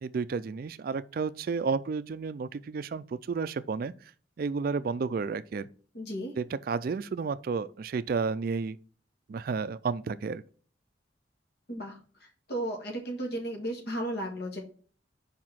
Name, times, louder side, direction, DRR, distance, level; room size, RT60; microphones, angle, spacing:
voice 1, 0.0-3.9 4.4-5.7 6.4-8.8 9.3-10.4, right 5 dB, 50° right, 0.3 m, -31 dB
voice 2, 5.9-6.3 11.7-12.0 12.5-14.6, right 1 dB, 60° left, 1.6 m, -34 dB
5.1 x 4.7 x 5.6 m
head